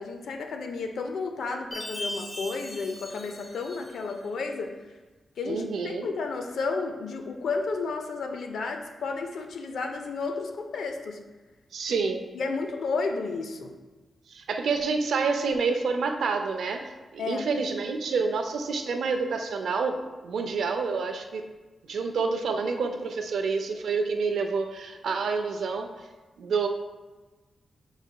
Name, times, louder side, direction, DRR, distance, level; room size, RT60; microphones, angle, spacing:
voice 1, 0.0-4.8 5.4-11.2 11.9-12.0 12.3-13.8 17.2-17.5, left 4 dB, 85° left, 5 dB, 0.5 m, -32 dB
Chime, 1.7-4.2, left 1 dB, 20° left, 1.2 m, -39 dB
voice 2, 5.5-6.1 11.7-12.3 14.3-21.4 21.9-25.9 26.4-26.7, right 4 dB, 85° right, 5 dB, 0.4 m, -28 dB
6.0 x 4.0 x 2.3 m, 1.2 s
wide cardioid pair, 170°, 0 cm